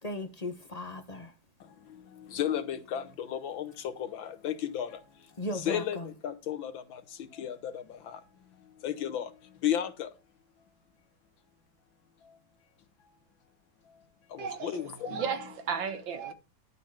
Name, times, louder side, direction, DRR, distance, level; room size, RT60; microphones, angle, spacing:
voice 1, 0.0-1.3 5.4-6.1, left 1 dB, 25° left, 0.9 m, -37 dB
voice 2, 1.6-5.3 5.5-8.2 8.8-10.1 12.2-12.4 13.9-14.0 14.3-15.2, left 10 dB, 90° left, 2.0 m, -34 dB
voice 3, 14.4-16.3, right 6 dB, 80° right, 2.1 m, -34 dB
12.0 x 4.1 x 7.3 m
omnidirectional pair, 2.1 m